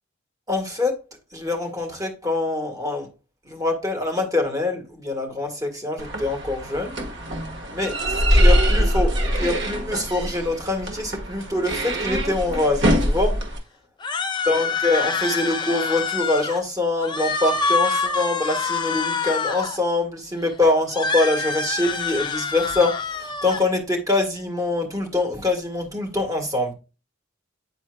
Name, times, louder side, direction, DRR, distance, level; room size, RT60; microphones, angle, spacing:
voice 1, 0.5-1.0 1.3-3.1 3.5-6.9 7.7-8.0 8.3-13.4 14.5-26.7, left 2 dB, 20° right, 1.9 m, -24 dB
sound 1, 6.0-13.6, equal, 60° right, 1.6 m, -23 dB
sound 2, 14.0-16.6 17.0-19.8 20.9-23.6, left 4 dB, 25° left, 0.7 m, -26 dB
9.4 x 4.4 x 2.3 m
head